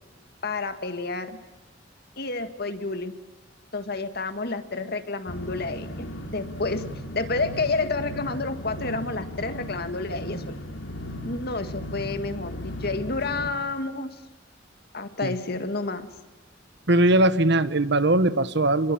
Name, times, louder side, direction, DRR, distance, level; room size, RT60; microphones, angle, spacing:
voice 1, 0.4-1.4 2.2-3.2 3.7-5.9 6.3-6.8 7.1-10.6 11.2-14.2 14.9-16.1, left 3 dB, 55° left, 9 dB, 2.1 m, -30 dB
sound 1, 5.3-13.5, equal, 90° left, 3.6 m, -36 dB
voice 2, 16.9-18.9, right 1 dB, 60° right, 14 dB, 1.2 m, -20 dB
28.5 x 22.0 x 8.8 m, 1.0 s
head